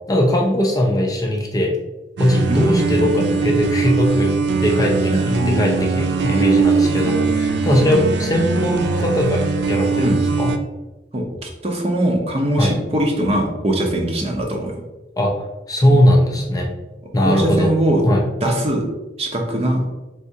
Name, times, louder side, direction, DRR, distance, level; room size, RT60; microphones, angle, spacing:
voice 1, 0.1-1.7 2.2-10.5 12.6-12.7 15.2-15.3 15.7-16.7 17.1-17.7 18.1-18.3, left 1 dB, 20° left, 0 dB, 0.5 m, -19 dB
sound 1, 2.2-10.6, right 4 dB, 65° right, 0.4 m, -20 dB
voice 2, 2.5-3.4 4.5-4.6 5.1-5.6 10.0-10.2 11.1-14.7 17.2-18.0 18.4-18.8 19.2-19.8, right 1 dB, 35° right, 1 dB, 0.7 m, -21 dB
4.1 x 3.5 x 2.7 m, 1.1 s
head